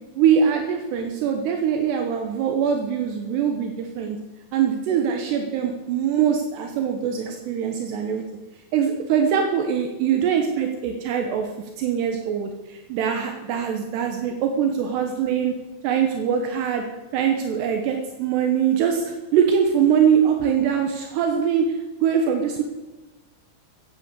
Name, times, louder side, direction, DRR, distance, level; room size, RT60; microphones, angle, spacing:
voice 1, 0.2-4.2 4.5-8.2 8.7-11.5 11.8-15.5 15.8-16.8 17.1-22.6, right 7 dB, 75° right, 4 dB, 3.3 m, -22 dB
15.5 x 8.3 x 8.3 m, 1.1 s
omnidirectional pair, 4.9 m